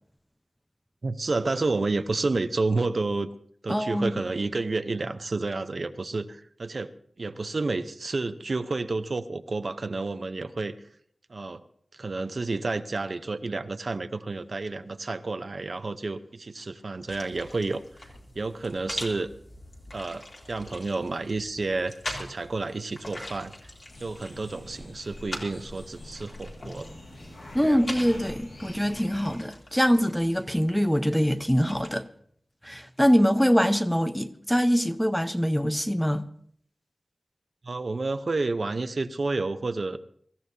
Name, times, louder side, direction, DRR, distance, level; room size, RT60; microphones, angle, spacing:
voice 1, 1.0-3.3 3.6-6.9 7.2-10.8 11.3-11.6 11.9-18.1 18.3-19.3 19.9-23.5 24.0-26.9 27.6-27.8 37.6-40.0, right 3 dB, 55° right, 0.8 m, -30 dB
voice 2, 3.7-4.1 27.5-32.1 32.6-36.3, equal, 5° left, 0.8 m, -24 dB
sound 1, 17.1-31.9, left 1 dB, 45° left, 2.9 m, -42 dB
sound 2, 23.9-29.4, left 1 dB, 85° left, 7.5 m, -44 dB
25.0 x 14.0 x 2.8 m
wide cardioid pair, 90°, 0 cm